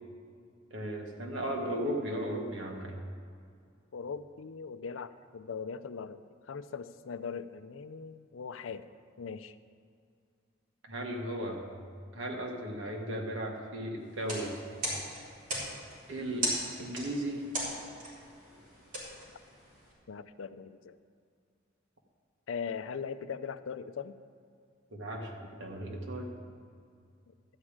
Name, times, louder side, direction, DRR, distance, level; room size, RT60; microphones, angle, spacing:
voice 1, 0.7-3.0 10.8-11.6 12.1-14.5 16.1-16.5 16.8-17.4 24.9-25.3 25.6-26.3, right 1 dB, 70° right, 0 dB, 1.7 m, -36 dB
voice 2, 3.9-6.2 6.5-8.8 9.2-9.6 20.1-21.0 22.5-24.2, left 6 dB, 90° left, 12 dB, 0.5 m, -40 dB
sound 1, 14.1-19.9, right 1 dB, 40° right, 3.5 m, -38 dB
12.5 x 4.9 x 8.8 m, 2.2 s
head